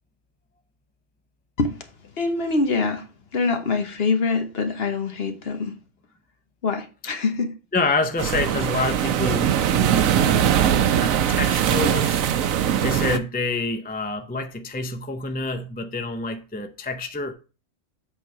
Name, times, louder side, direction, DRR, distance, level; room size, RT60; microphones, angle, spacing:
voice 1, 2.2-3.0 3.3-5.8 6.6-7.6, left 4 dB, 50° left, 1.2 m, -24 dB
voice 2, 7.7-12.2 12.8-17.3, left 3 dB, 15° left, 0.4 m, -27 dB
sound 1, 8.2-13.2, right 10 dB, 90° right, 1.1 m, -21 dB
7.7 x 4.6 x 4.8 m
omnidirectional pair, 1.4 m